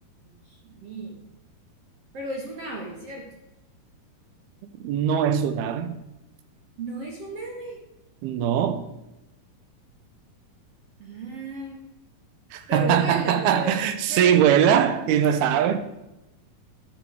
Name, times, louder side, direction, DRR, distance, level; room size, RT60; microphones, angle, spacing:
voice 1, 0.2-1.2 2.1-3.3 6.8-7.8 11.0-11.8 12.7-13.8 14.1-14.5, right 2 dB, 45° right, 2.5 m, -34 dB
voice 2, 4.8-5.9 8.2-8.8 12.5-15.8, right 9 dB, 80° right, 2.8 m, -21 dB
12.5 x 12.0 x 4.7 m
omnidirectional pair, 4.4 m